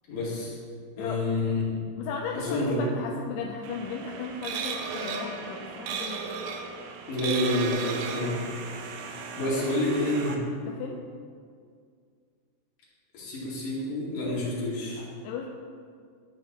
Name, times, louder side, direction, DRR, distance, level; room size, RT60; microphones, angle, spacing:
voice 1, 0.1-0.6 1.0-1.8 2.3-2.8 7.1-10.4 13.1-15.0, left 1 dB, 55° left, -8 dB, 3.6 m, -29 dB
voice 2, 2.0-6.5 9.6-10.4 10.7-11.0 15.2-15.5, left 6 dB, 80° left, 1 dB, 2.5 m, -36 dB
sound 1, 3.6-10.4, right 5 dB, 85° right, 3.0 m, -36 dB
12.5 x 6.6 x 3.1 m, 2.2 s
omnidirectional pair, 5.1 m